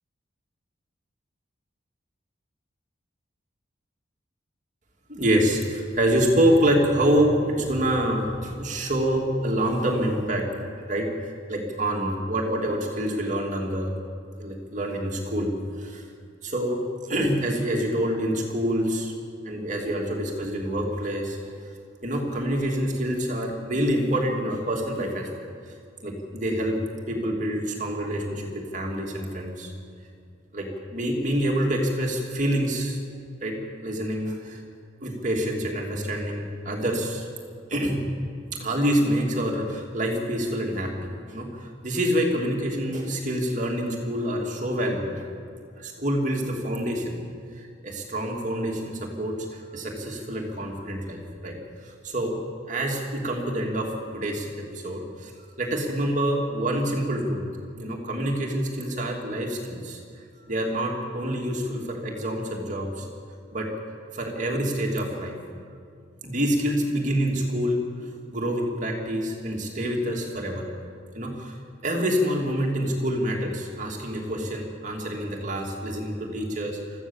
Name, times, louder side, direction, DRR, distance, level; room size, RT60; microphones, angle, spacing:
voice 1, 5.1-10.5 10.9-13.9 14.4-16.1 16.4-19.1 19.4-21.4 22.0-25.4 26.0-26.8 27.1-29.7 30.5-33.0 33.4-33.6 33.8-34.6 35.0-37.3 37.7-38.0 38.5-45.2 45.8-47.2 47.5-51.6 51.8-52.4 52.7-55.3 55.6-57.4 57.8-60.0 60.5-63.1 63.5-63.7 64.1-65.4 66.2-67.8 68.3-70.7 71.1-71.5 71.8-76.8, equal, 40° right, 0 dB, 2.7 m, -26 dB
24.0 x 15.0 x 7.3 m, 2.3 s
head